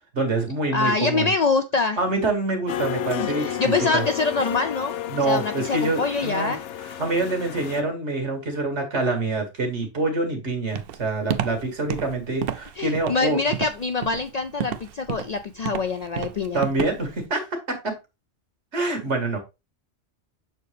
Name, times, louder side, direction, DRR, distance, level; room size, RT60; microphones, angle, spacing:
voice 1, 0.1-1.3 2.0-4.0 5.1-6.5 7.0-13.4 16.5-17.9 18.7-19.4, right 2 dB, 85° right, 3 dB, 2.0 m, -26 dB
voice 2, 0.7-2.0 3.2-4.9 5.2-6.6 12.8-16.6, left 4 dB, 60° left, 8 dB, 0.4 m, -25 dB
sound 1, 2.7-7.8, left 10 dB, 90° left, 0.9 m, -31 dB
Walk footsteps, 10.8-17.2, right 9 dB, 65° right, 0.7 m, -31 dB
6.6 x 4.5 x 3.2 m, 0.26 s
omnidirectional pair, 1.2 m